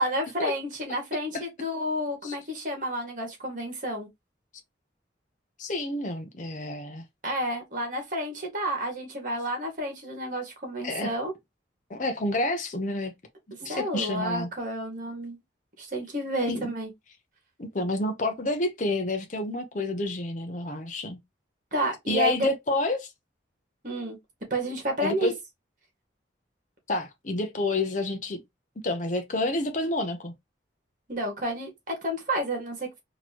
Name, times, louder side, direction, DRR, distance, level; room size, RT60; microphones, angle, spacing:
voice 1, 0.0-4.1 7.2-11.3 13.6-15.4 15.8-16.9 21.7-22.5 23.8-24.2 24.5-25.3 31.1-32.9, right 1 dB, 45° right, 1.9 m, -30 dB
voice 2, 5.6-7.0 10.8-11.1 11.9-13.1 13.6-14.5 16.5-16.7 17.6-21.2 22.1-23.1 25.0-25.3 26.9-28.4 28.8-30.3, left 2 dB, 40° left, 0.8 m, -29 dB
4.3 x 3.0 x 2.9 m
head